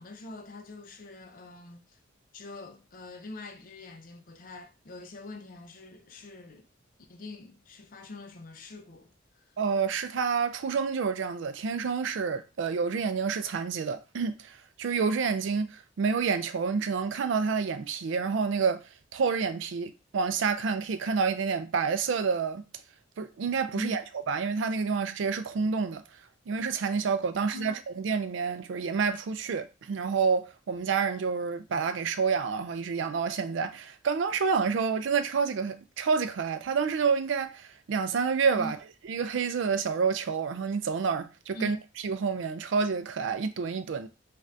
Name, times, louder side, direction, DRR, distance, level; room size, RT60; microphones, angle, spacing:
voice 1, 0.0-2.0 2.3-6.7 7.1-9.5 23.7-24.0 27.3-27.8 38.6-38.7 41.5-41.8, left 2 dB, 45° left, 0.5 m, -44 dB
voice 2, 9.6-18.8 19.1-22.6 23.2-26.0 26.5-38.8 39.0-41.8 42.0-44.1, right 5 dB, 70° right, 0.4 m, -28 dB
2.5 x 2.4 x 3.2 m
head